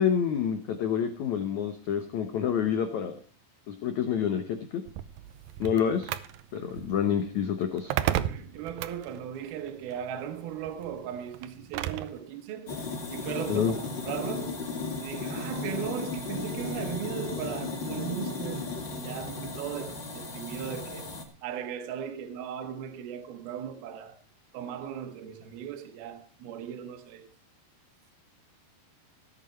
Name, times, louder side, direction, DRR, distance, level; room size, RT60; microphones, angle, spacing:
voice 1, 0.0-3.2 3.7-4.8 5.6-6.1 6.5-7.9 13.5-13.7, left 8 dB, 90° left, 1.6 m, -28 dB
sound 1, 4.9-12.2, right 12 dB, 90° right, 2.0 m, -35 dB
voice 2, 8.3-12.8 13.1-14.6 15.0-21.1 21.4-24.2 24.5-27.3, right 9 dB, 65° right, 3.1 m, -37 dB
sound 2, 12.7-21.2, left 4 dB, 35° left, 2.2 m, -35 dB
18.0 x 9.0 x 4.5 m
omnidirectional pair, 5.1 m